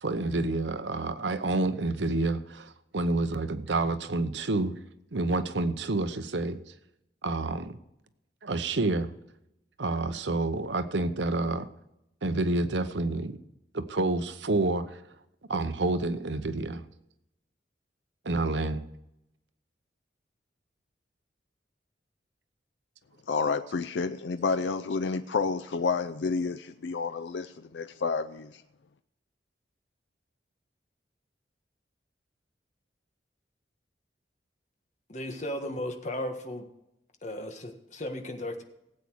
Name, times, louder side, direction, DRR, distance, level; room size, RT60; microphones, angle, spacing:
voice 1, 0.0-4.7 5.1-6.6 7.2-7.8 8.4-9.1 9.8-11.7 12.2-13.4 13.7-15.0 15.5-16.8 18.2-18.8, right 2 dB, 75° right, 11 dB, 0.9 m, -28 dB
voice 2, 23.3-28.6, left 4 dB, 75° left, 11 dB, 0.5 m, -30 dB
voice 3, 35.1-36.7 37.2-38.6, left 1 dB, 40° left, 5 dB, 1.6 m, -35 dB
17.5 x 8.5 x 4.7 m, 0.84 s
head